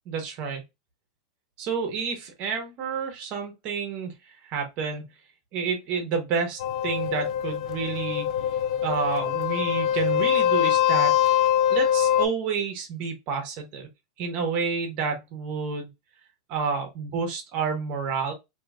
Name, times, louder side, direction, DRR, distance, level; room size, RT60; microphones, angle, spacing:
voice 1, 0.1-0.6 1.6-4.1 4.4-5.1 5.5-8.3 8.8-11.1 11.7-13.9 14.2-15.9 16.5-18.3, right 5 dB, 35° right, 1.1 m, -29 dB
sound 1, 6.6-12.3, left 10 dB, 75° left, 0.4 m, -23 dB
3.0 x 2.8 x 2.5 m
supercardioid pair, 155°, 4 cm